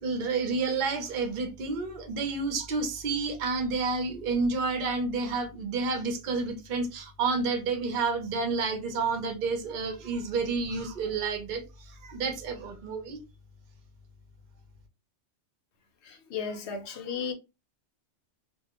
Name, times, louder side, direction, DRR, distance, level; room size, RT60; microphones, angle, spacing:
voice 1, 0.0-13.2, right 4 dB, 55° right, 0.6 m, -30 dB
voice 2, 16.0-17.3, left 6 dB, 70° left, 0.8 m, -35 dB
2.2 x 2.1 x 2.9 m
omnidirectional pair, 1.3 m